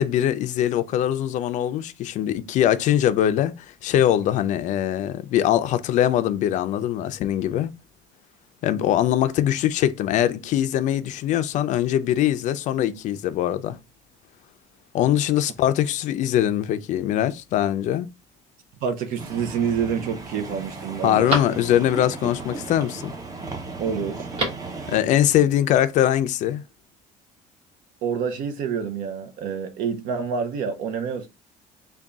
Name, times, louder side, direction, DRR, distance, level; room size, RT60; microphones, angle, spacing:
voice 1, 0.0-3.5 3.8-7.7 8.6-13.8 14.9-18.1 21.0-23.1 24.9-26.6, left 11 dB, 50° left, 0.4 m, -22 dB
voice 2, 18.8-21.3 23.8-24.3 28.0-31.3, right 6 dB, 65° right, 0.6 m, -27 dB
Telephone, 19.0-19.6 20.1-20.2 20.6-22.1 24.1-24.8 25.0-25.1, right 1 dB, 40° right, 1.5 m, -31 dB
sound 1, 19.2-25.0, right 3 dB, 25° right, 0.7 m, -36 dB
3.4 x 2.3 x 3.8 m
cardioid pair, 145°, 16 cm